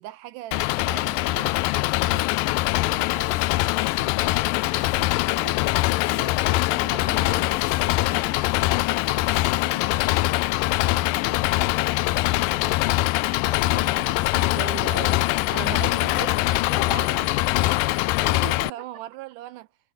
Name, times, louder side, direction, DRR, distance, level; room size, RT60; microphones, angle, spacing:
voice 1, 0.0-1.6 2.1-2.3 6.5-6.6 6.9-7.5 13.4-17.8 18.2-19.7, right 16 dB, 80° right, 2.1 m, -39 dB
Engine, 0.5-18.7, left 19 dB, 90° left, 2.3 m, -23 dB
voice 2, 2.7-5.6 6.1-10.4 10.7-12.8 14.3-14.4 18.3-19.0, right 7 dB, 60° right, 4.2 m, -45 dB
omnidirectional pair, 3.9 m